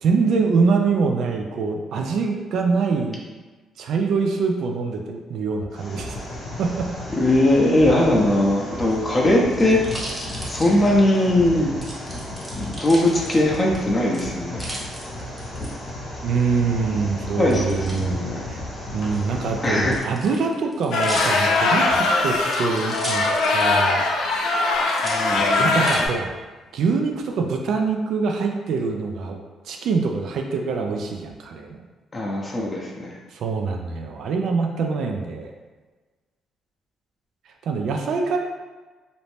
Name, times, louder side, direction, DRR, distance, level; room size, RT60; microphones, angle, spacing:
voice 1, 0.0-3.2 3.8-6.2 6.6-6.9 16.2-18.6 18.9-24.6 25.3-26.3 26.7-31.8 33.3-35.5 37.7-38.4, right 4 dB, 70° right, 3 dB, 0.4 m, -24 dB
sound 1, 5.7-20.0, left 1 dB, 65° left, 0.8 m, -34 dB
voice 2, 7.1-9.8 10.5-11.7 12.8-14.6 17.4-18.4 19.6-20.0 25.0-25.8 32.1-33.2, left 1 dB, 25° left, -3 dB, 0.6 m, -20 dB
sound 2, 8.8-11.3 11.8-13.8 14.1-15.7 17.5-18.0 19.0-23.9 24.2-24.3 24.9-26.0 26.6-27.2, equal, 15° right, 0.7 m, -36 dB
sound 3, 20.9-26.1, left 3 dB, 85° left, 0.3 m, -21 dB
2.6 x 2.0 x 3.1 m, 1.3 s
cardioid pair, 90°, 0 cm